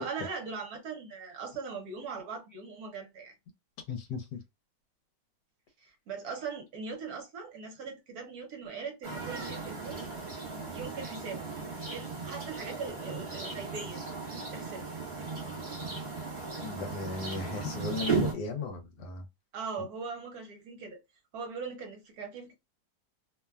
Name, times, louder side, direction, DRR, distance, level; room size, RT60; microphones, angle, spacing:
voice 1, 0.0-3.3 5.8-10.1 10.7-11.5 11.9-14.0 14.3-14.9 19.5-21.0 21.3-22.5, right 5 dB, 65° right, 1.1 m, -40 dB
voice 2, 3.9-4.4 16.6-19.2, left 4 dB, 75° left, 1.3 m, -36 dB
sound 1, 9.0-18.3, right 4 dB, 40° right, 1.2 m, -36 dB
3.0 x 2.2 x 2.2 m
omnidirectional pair, 1.8 m